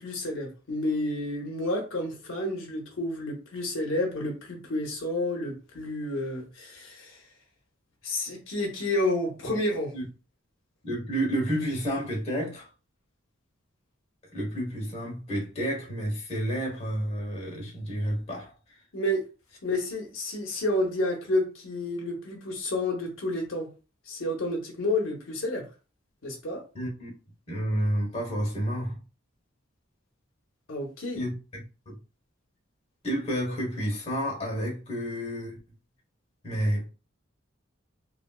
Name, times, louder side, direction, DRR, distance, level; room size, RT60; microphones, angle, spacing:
voice 1, 0.0-7.2 8.0-9.9 18.9-19.2 19.6-23.7 24.1-25.6 26.2-26.6 30.7-31.2, left 1 dB, 75° left, 0.9 m, -30 dB
voice 2, 10.8-12.7 14.3-18.5 26.7-27.1 27.5-29.0 31.1-31.9 33.0-35.6 36.4-36.9, equal, 30° left, 1.2 m, -30 dB
3.3 x 2.6 x 2.3 m
head